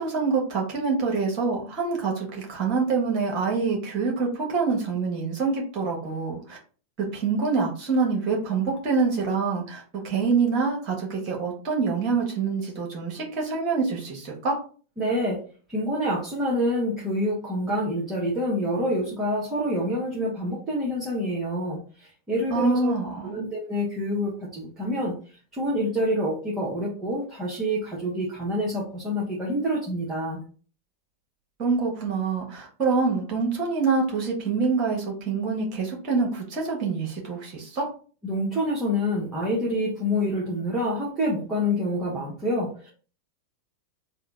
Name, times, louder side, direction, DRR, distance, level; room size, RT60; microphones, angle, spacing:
voice 1, 0.0-6.6 7.1-14.6 22.5-23.4 31.6-37.8, right 4 dB, 35° right, 0 dB, 1.5 m, -26 dB
voice 2, 15.0-15.4 15.7-21.8 22.3-22.9 23.2-25.2 25.5-30.4 38.2-42.9, equal, 15° right, -5 dB, 1.2 m, -27 dB
3.6 x 2.3 x 3.7 m, 0.39 s
figure-of-eight pair, 90°, 0 cm